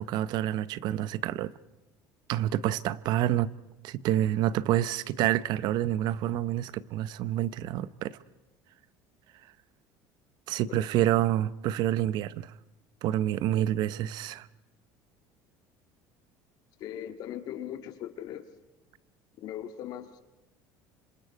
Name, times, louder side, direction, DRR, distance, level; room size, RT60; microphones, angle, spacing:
voice 1, 0.0-1.5 2.3-3.5 3.8-8.2 10.5-12.5 13.0-14.5, right 12 dB, 55° right, 0.8 m, -28 dB
voice 2, 16.8-18.5 19.4-20.2, left 11 dB, 50° left, 1.9 m, -39 dB
27.0 x 25.5 x 4.7 m
cardioid pair, 155°, 9 cm